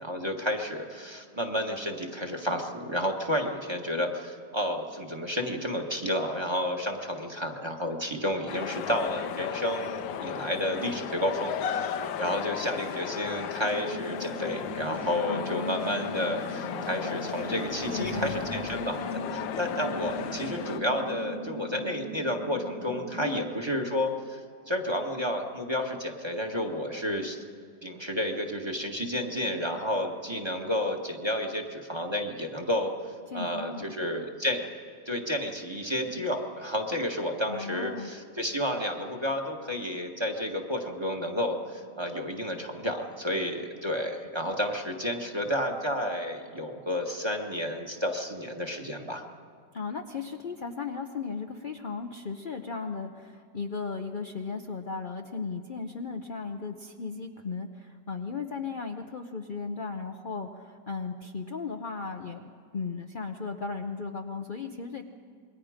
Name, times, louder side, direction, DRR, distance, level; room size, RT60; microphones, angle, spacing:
voice 1, 0.0-19.0 19.3-24.4 24.7-27.4 27.8-34.6 35.0-49.2, left 1 dB, 15° right, 2 dB, 1.4 m, -31 dB
sound 1, 8.5-20.8, left 8 dB, 85° left, 1.5 m, -35 dB
sound 2, 8.5-8.6 8.9-9.3 11.1-11.2 14.2-22.3, right 1 dB, 60° right, 3.0 m, -47 dB
sound 3, 13.6-23.3, equal, 85° right, 5.3 m, -40 dB
voice 2, 15.3-16.0 17.9-18.4 23.2-23.4 33.3-33.9 37.5-38.1 49.7-65.0, left 5 dB, 60° left, 4 dB, 0.5 m, -36 dB
27.5 x 22.0 x 5.1 m, 2.1 s
omnidirectional pair, 2.0 m